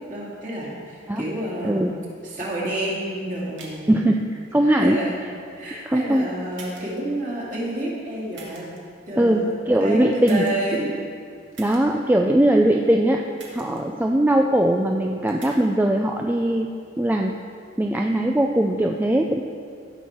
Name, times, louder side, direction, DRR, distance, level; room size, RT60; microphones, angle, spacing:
voice 1, 0.1-1.8 2.2-4.0 4.6-5.2 5.5-8.7 9.1-9.5 9.8-10.9, right 1 dB, 40° right, -5 dB, 2.4 m, -29 dB
sound 1, 3.5-3.8 4.5-5.1 5.8-5.9 6.5-7.0 8.3-8.8 10.2-10.7 11.5-11.8 13.4-13.8 14.1-14.2 15.3-15.5, right 4 dB, 70° right, 2.1 m, -44 dB
voice 2, 3.9-5.0 5.9-6.3 9.2-10.4 11.6-13.2 13.5-16.7 17.0-17.4 17.8-19.4, right 1 dB, 10° right, 2 dB, 0.3 m, -20 dB
16.5 x 6.3 x 4.3 m, 2.3 s
head